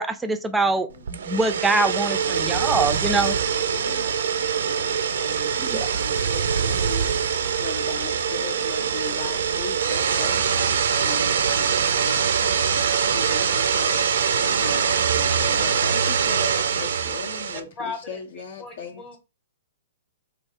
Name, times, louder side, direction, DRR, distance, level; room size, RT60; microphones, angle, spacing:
voice 1, 0.0-3.4 5.6-5.9, right 3 dB, 10° right, 0.4 m, -24 dB
voice 2, 0.6-1.0 1.8-12.8 13.1-19.2, left 5 dB, 65° left, 0.6 m, -39 dB
sound 1, 1.1-17.6, right 7 dB, 75° right, 0.4 m, -23 dB
voice 3, 17.5-19.2, left 4 dB, 30° left, 0.8 m, -38 dB
3.2 x 2.4 x 3.5 m
hypercardioid pair, 130°, 0 cm